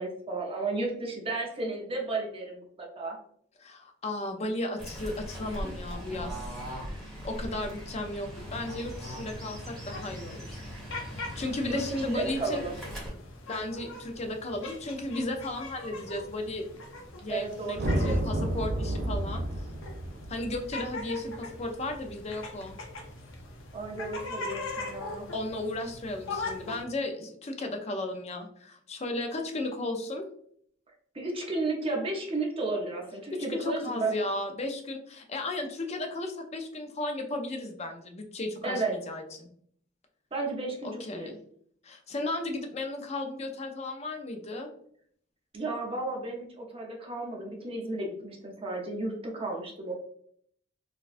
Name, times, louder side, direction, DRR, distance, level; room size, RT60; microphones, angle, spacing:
voice 1, 0.0-3.2 11.6-12.7 17.3-18.4 23.7-25.3 31.1-34.1 38.6-38.9 40.3-41.3 45.5-49.9, right 2 dB, 30° right, -1 dB, 0.8 m, -33 dB
voice 2, 3.6-6.6 7.0-10.6 11.1-12.6 13.5-16.8 17.2-19.4 20.3-22.8 25.3-30.3 33.3-39.5 40.8-41.4 41.8-44.7, left 2 dB, 35° left, 4 dB, 0.5 m, -35 dB
Fowl / Bird, 4.8-13.1, equal, ahead, 1.1 m, -40 dB
sound 1, 8.3-26.8, left 2 dB, 90° left, 0.6 m, -42 dB
sound 2, 17.7-22.1, right 1 dB, 50° right, 0.4 m, -31 dB
4.1 x 2.3 x 2.5 m, 0.64 s
head